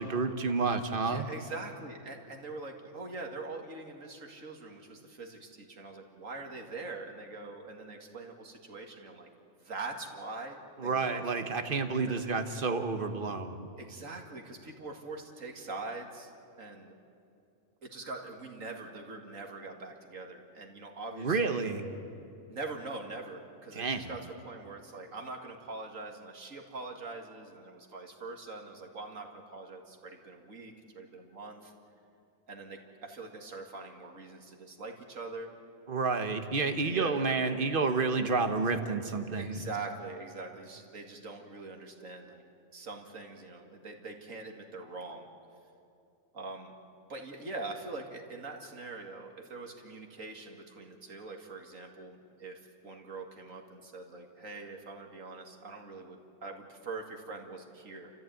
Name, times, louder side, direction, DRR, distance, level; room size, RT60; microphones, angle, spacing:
voice 1, 0.0-1.3 10.8-13.7 21.2-21.9 23.7-24.1 35.9-39.7, right 4 dB, 40° right, 7 dB, 1.5 m, -30 dB
voice 2, 1.0-9.3 9.6-11.2 12.1-12.2 13.8-16.3 16.6-16.9 17.8-21.6 22.5-31.7 32.5-35.5 36.8-37.4 39.3-42.4 42.7-45.3 46.3-46.7 47.1-58.1, right 3 dB, 75° right, 2 dB, 2.5 m, -43 dB
29.5 x 14.0 x 9.1 m, 2.6 s
omnidirectional pair, 1.4 m